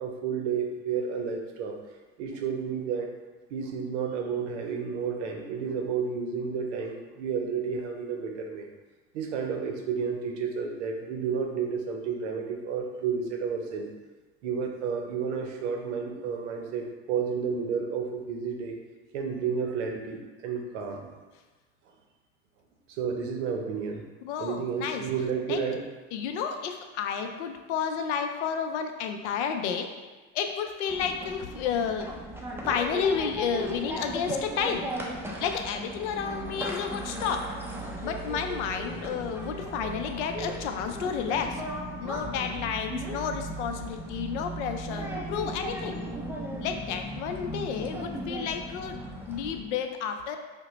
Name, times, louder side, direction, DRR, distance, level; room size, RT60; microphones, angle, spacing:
voice 1, 0.0-1.8 2.2-3.1 3.5-8.7 9.1-13.9 14.4-18.7 19.1-21.1 23.0-24.0 24.4-25.8 39.1-39.3 43.3-43.4, right 6 dB, 85° right, 2 dB, 0.6 m, -31 dB
voice 2, 24.2-25.0 25.5-25.6 26.1-29.9 30.3-32.1 32.7-34.9 35.4-37.5 38.0-41.6 42.0-46.0 46.6-50.4, left 7 dB, 85° left, 5 dB, 0.5 m, -31 dB
sound 1, 30.9-49.6, right 1 dB, 5° right, 0.5 m, -36 dB
2.9 x 2.1 x 3.9 m, 1.3 s
hypercardioid pair, 85°, 34 cm